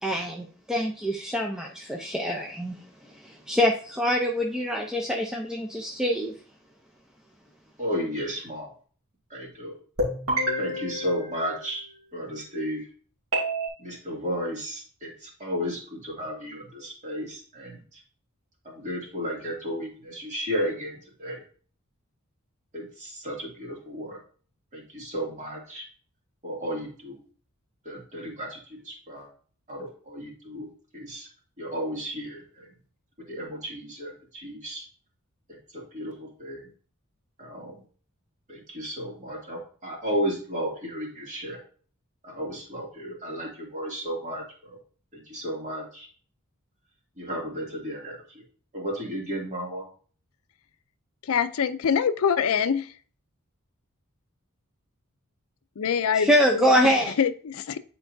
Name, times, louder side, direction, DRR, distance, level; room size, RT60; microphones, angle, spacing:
voice 1, 0.0-6.4 56.1-57.1, equal, 5° right, 0 dB, 0.5 m, -25 dB
voice 2, 7.8-8.7 9.3-9.7 10.6-11.9 12.1-12.9 13.8-18.0 18.6-21.4 22.7-24.2 24.7-25.9 26.4-27.2 27.8-29.3 29.7-30.7 30.9-31.3 31.6-32.7 33.3-34.8 35.5-36.6 37.4-37.8 38.5-41.6 42.2-44.8 45.1-46.1 47.2-48.4 48.7-49.9, equal, 35° right, -2 dB, 2.4 m, -33 dB
sound 1, 10.0-12.1 13.3-13.7, equal, 80° right, 2.9 m, -29 dB
voice 3, 51.2-52.9 55.8-57.8, left 7 dB, 75° left, 12 dB, 0.4 m, -25 dB
10.0 x 4.5 x 2.6 m, 0.43 s
head